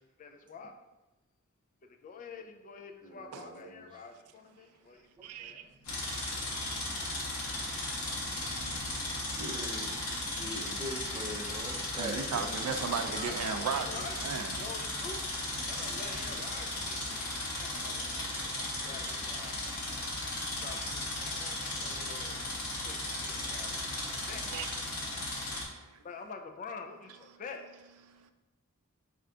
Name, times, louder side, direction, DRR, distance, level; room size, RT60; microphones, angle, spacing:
voice 1, 0.2-0.8 1.8-5.1 5.4-5.7 12.7-14.3 14.6-19.8 20.6-22.5 22.8-24.4 26.0-27.6, left 4 dB, 35° left, 5 dB, 0.3 m, -47 dB
voice 2, 3.0-3.9 5.2-5.3 9.3-12.5, right 1 dB, 20° right, 0 dB, 0.5 m, -42 dB
sound 1, 3.7-3.8 4.1-4.2 4.5-4.6 4.9-16.4, equal, 10° left, 1.0 m, -56 dB
voice 3, 5.2-5.6 12.0-14.7 18.2-18.7 21.8-21.9 23.5-25.1 25.4-26.0 28.1-28.3, right 6 dB, 90° right, 8 dB, 0.3 m, -38 dB
sound 2, 5.8-25.6, left 2 dB, 70° left, 1.0 m, -36 dB
4.3 x 2.4 x 3.5 m, 1.1 s
head